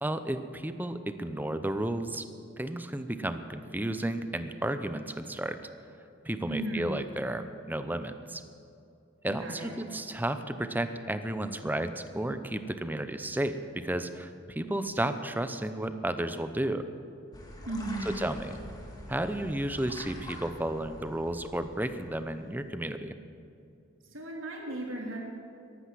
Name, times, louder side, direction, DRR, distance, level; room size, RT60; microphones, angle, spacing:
voice 1, 0.0-2.2 2.6-5.6 6.2-8.4 9.2-16.8 18.1-18.6 19.1-23.1, right 1 dB, 10° right, 10 dB, 0.7 m, -33 dB
voice 2, 6.5-6.9 9.3-9.7 17.6-18.1 24.0-25.2, right 1 dB, 90° right, -1 dB, 3.4 m, -35 dB
sound 1, 17.3-22.6, left 1 dB, 20° left, 2.1 m, -45 dB
14.0 x 12.0 x 7.7 m, 2.5 s
head